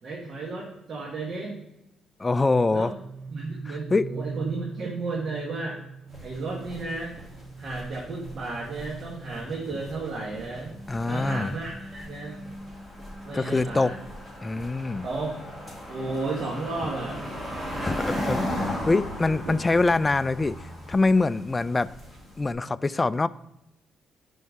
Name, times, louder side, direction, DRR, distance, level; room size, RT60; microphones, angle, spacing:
voice 1, 0.0-1.6 2.7-2.9 3.3-5.8 6.2-7.1 7.6-10.7 11.1-12.4 13.2-14.0 15.0-15.4 15.9-17.2 19.4-19.8, right 3 dB, 55° right, -2 dB, 1.7 m, -33 dB
voice 2, 2.2-2.9 3.7-4.1 10.9-11.5 13.3-13.9 14.4-15.1 17.8-21.9 22.4-23.3, left 3 dB, 25° left, 16 dB, 0.3 m, -24 dB
sound 1, 2.7-15.0 15.3-17.4 17.7-18.0, right 3 dB, 35° right, 2.7 m, -43 dB
sound 2, 6.1-22.5, equal, 20° right, 2.7 m, -37 dB
6.5 x 4.5 x 6.5 m, 0.89 s
cardioid pair, 90°, 0 cm